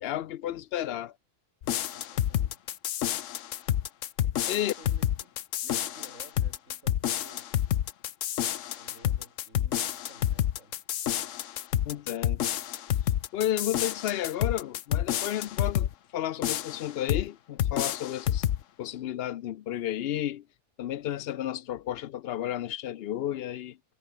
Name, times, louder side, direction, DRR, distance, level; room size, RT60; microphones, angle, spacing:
voice 1, 0.0-1.1 4.5-4.7 11.9-12.4 13.3-18.4 18.8-20.4 20.8-23.8, left 12 dB, 65° left, 0.7 m, -32 dB
sound 1, 1.6-15.9 16.4-17.3 17.6-18.6, left 11 dB, 85° left, 1.1 m, -29 dB
voice 2, 1.9-2.6 4.2-5.4 5.6-7.6 8.7-10.8, right 1 dB, 85° right, 7.8 m, -54 dB
omnidirectional pair, 1.3 m